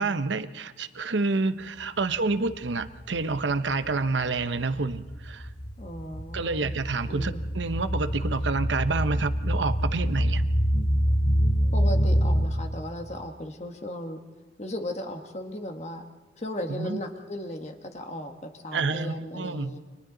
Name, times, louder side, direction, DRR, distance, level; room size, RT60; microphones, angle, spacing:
voice 1, 0.0-5.5 6.3-10.4 16.7-17.0 18.7-19.7, right 3 dB, 80° right, 11 dB, 0.8 m, -28 dB
sound 1, 2.0-2.9 3.1-12.5, equal, 70° left, 3.2 m, -26 dB
voice 2, 5.8-6.7 7.1-7.4 11.7-14.2 14.6-16.0 16.4-19.8, left 1 dB, 35° left, 4 dB, 1.4 m, -36 dB
30.0 x 25.0 x 3.9 m, 1.2 s
head